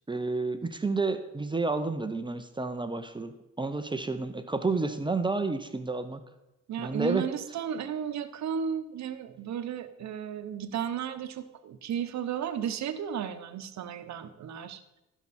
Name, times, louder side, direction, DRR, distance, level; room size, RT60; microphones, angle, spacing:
voice 1, 0.1-6.2 6.8-7.2, right 3 dB, 15° right, 8 dB, 0.7 m, -30 dB
voice 2, 6.7-14.8, right 8 dB, 65° right, 10 dB, 1.0 m, -34 dB
15.0 x 6.0 x 4.3 m, 0.95 s
cardioid pair, 90°, 30 cm